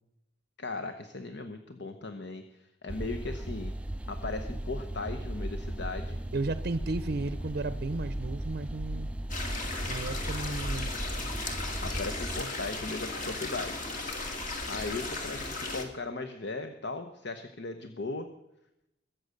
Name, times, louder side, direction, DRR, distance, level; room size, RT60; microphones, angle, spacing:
voice 1, 0.6-3.7 4.1-6.2 11.8-13.8 14.7-18.3, left 3 dB, 65° left, 6 dB, 1.0 m, -37 dB
sound 1, 2.9-12.4, right 1 dB, 5° right, 0.5 m, -36 dB
voice 2, 6.3-9.1 9.9-10.9, right 3 dB, 55° right, 12 dB, 0.6 m, -34 dB
sound 2, 9.3-15.8, left 2 dB, 45° left, 2.4 m, -36 dB
22.5 x 8.0 x 6.6 m, 0.86 s
head